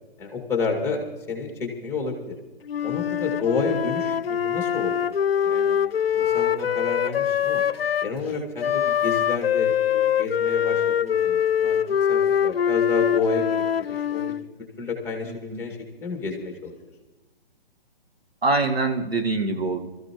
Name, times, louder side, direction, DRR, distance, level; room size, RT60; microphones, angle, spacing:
voice 1, 0.2-1.0 1.3-2.3 2.8-5.8 6.1-7.6 8.0-16.7, left 4 dB, 10° left, 3 dB, 2.1 m, -30 dB
Wind instrument woodwind instrument, 2.7-8.1 8.6-14.5, left 9 dB, 75° left, 0.5 m, -23 dB
voice 2, 15.2-15.6 18.4-19.8, right 3 dB, 85° right, 3 dB, 1.9 m, -24 dB
24.5 x 14.5 x 3.1 m, 1.1 s
figure-of-eight pair, 135°, 30 cm